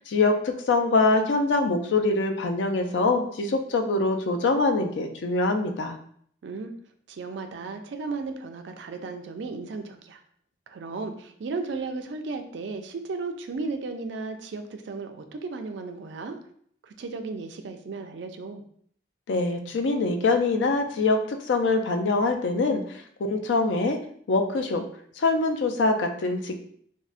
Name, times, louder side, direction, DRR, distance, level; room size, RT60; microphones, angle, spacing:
voice 1, 0.0-6.0 19.3-23.0 23.3-24.0 24.3-24.8 25.2-26.6, left 3 dB, 85° left, 5 dB, 0.4 m, -24 dB
voice 2, 6.4-6.7 7.1-10.2 10.7-16.4 16.8-18.6, right 4 dB, 80° right, 6 dB, 0.4 m, -35 dB
3.6 x 2.0 x 2.4 m, 0.63 s
head